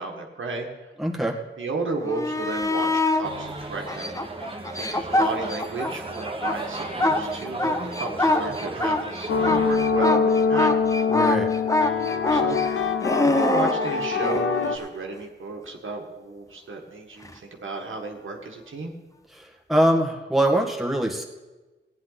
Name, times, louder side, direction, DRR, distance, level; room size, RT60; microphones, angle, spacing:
voice 1, 0.0-0.9 1.6-4.1 4.8-10.7 12.3-18.9, right 3 dB, 80° right, 1 dB, 1.7 m, -33 dB
voice 2, 1.0-1.4 11.1-11.5 19.4-21.2, right 1 dB, ahead, 0 dB, 1.8 m, -23 dB
sound 1, 2.0-3.3 3.9-5.9 6.3-14.5 17.2-17.3, left 2 dB, 15° left, 1.0 m, -24 dB
sound 2, 3.2-9.8, right 2 dB, 25° right, 1.5 m, -35 dB
sound 3, 9.3-14.8, left 5 dB, 85° left, 0.7 m, -24 dB
15.5 x 9.7 x 4.1 m, 1.2 s
wide cardioid pair, 70°, 20 cm